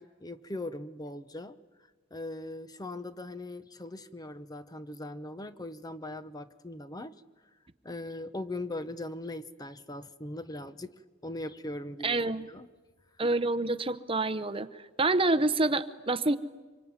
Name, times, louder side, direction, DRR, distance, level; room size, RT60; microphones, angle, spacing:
voice 1, 0.0-1.6 2.1-7.1 7.8-10.9 11.2-12.7, left 1 dB, 20° left, 12 dB, 0.8 m, -40 dB
voice 2, 12.0-12.5 13.2-14.7 15.0-16.4, right 2 dB, 25° right, 13 dB, 0.8 m, -27 dB
25.5 x 24.5 x 9.6 m, 1.3 s
head